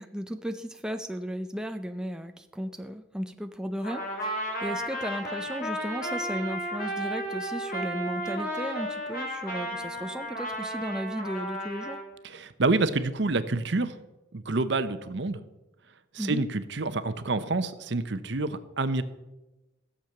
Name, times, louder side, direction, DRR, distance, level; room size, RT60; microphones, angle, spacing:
voice 1, 0.0-12.0 16.2-16.4, equal, 5° right, 7 dB, 0.4 m, -35 dB
Trumpet, 3.8-12.0, equal, 45° left, 2.8 m, -33 dB
voice 2, 12.2-14.0 14.3-15.4 16.1-19.0, right 3 dB, 60° right, 12 dB, 0.8 m, -28 dB
15.0 x 7.4 x 6.6 m, 1.0 s
head